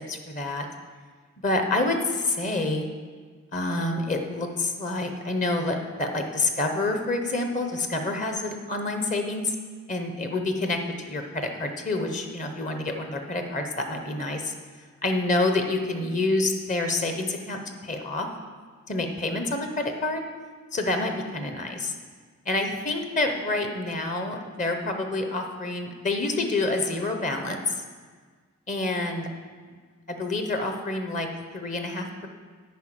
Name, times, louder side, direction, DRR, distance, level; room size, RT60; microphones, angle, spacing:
voice 1, 0.1-0.7 1.4-2.9 3.5-9.6 9.9-14.5 15.0-18.3 18.9-20.2 20.7-21.9 22.5-27.8 28.7-29.3 30.1-31.3 31.5-32.3, left 2 dB, 35° left, 5 dB, 0.8 m, -28 dB
10.0 x 5.2 x 7.5 m, 1.5 s
head